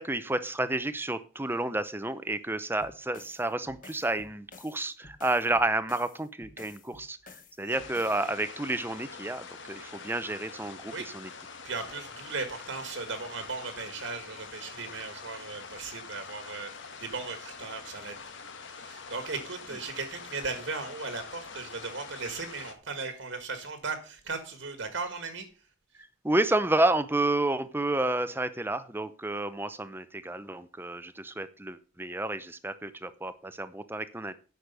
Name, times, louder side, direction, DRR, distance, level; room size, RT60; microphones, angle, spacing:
voice 1, 0.0-7.2 7.6-11.3 26.2-34.3, right 2 dB, 10° right, 13 dB, 0.7 m, -30 dB
sound 1, 2.8-8.3, left 4 dB, 40° left, 1.7 m, -52 dB
sound 2, 7.7-22.7, left 5 dB, 60° left, 1.7 m, -45 dB
voice 2, 11.6-16.7 17.0-18.1 18.8-25.5, right 4 dB, 65° right, 7 dB, 1.7 m, -37 dB
10.0 x 6.5 x 6.8 m, 0.37 s
head